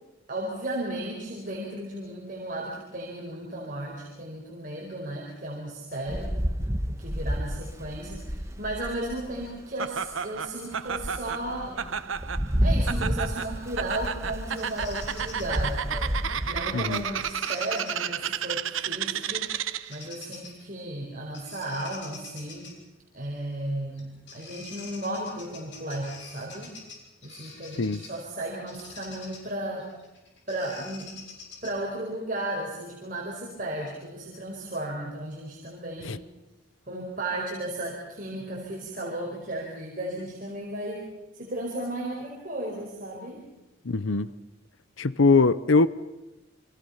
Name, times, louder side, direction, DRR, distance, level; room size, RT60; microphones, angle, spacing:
voice 1, 0.3-6.4 6.9-11.9 12.6-15.8 16.4-19.6 19.9-22.7 23.1-26.8 27.2-29.9 30.5-31.2 31.6-36.2 36.9-41.1 41.3-43.4, right 1 dB, 40° right, -2 dB, 4.8 m, -34 dB
Rain, 6.1-9.6 10.1-10.2 10.7-17.3, equal, 15° right, 1.1 m, -31 dB
Laughter, 9.8-20.0, right 8 dB, 85° right, 1.0 m, -32 dB
Bird vocalization bird call bird song, 14.6-15.6 17.3-17.9 19.2-19.5 19.8-20.6 21.3-22.7 24.0-24.1 24.3-28.2 28.7-31.9, left 5 dB, 65° left, 6.9 m, -46 dB
voice 2, 16.7-17.0 27.8-28.0 36.0-36.2 43.9-44.3 45.0-45.9, left 3 dB, 80° left, 16 dB, 0.8 m, -21 dB
29.5 x 25.5 x 5.7 m, 1.0 s
head